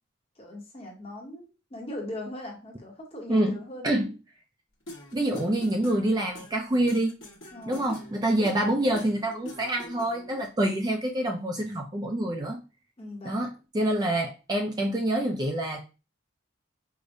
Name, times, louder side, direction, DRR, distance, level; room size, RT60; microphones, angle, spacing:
voice 1, 0.4-3.9 7.5-8.1 13.0-13.4, left 1 dB, 30° left, 1 dB, 0.9 m, -39 dB
sound 1, 4.9-10.4, equal, 75° left, 1.1 m, -45 dB
voice 2, 5.1-7.2 7.7-12.6 13.2-15.8, right 1 dB, 20° right, 2 dB, 0.3 m, -26 dB
4.7 x 2.1 x 2.5 m, 0.30 s
head